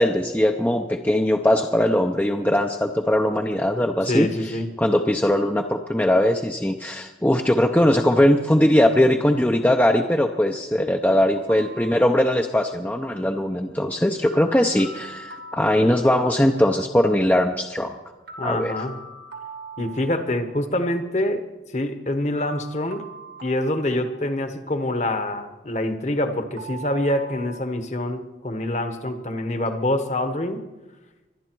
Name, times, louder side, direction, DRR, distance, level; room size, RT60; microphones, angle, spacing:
voice 1, 0.0-4.3 4.8-18.0 18.4-18.7, left 1 dB, 10° left, 4 dB, 0.6 m, -20 dB
voice 2, 4.0-4.7 18.4-19.0 19.8-21.4 21.7-23.0 23.4-30.6, left 1 dB, 40° left, 8 dB, 1.2 m, -25 dB
sound 1, 11.5-12.6 14.3-16.6 18.3-20.6 22.4-24.7 26.6-27.6, right 3 dB, 75° right, 2.2 m, -41 dB
24.0 x 11.0 x 4.6 m, 1.1 s
head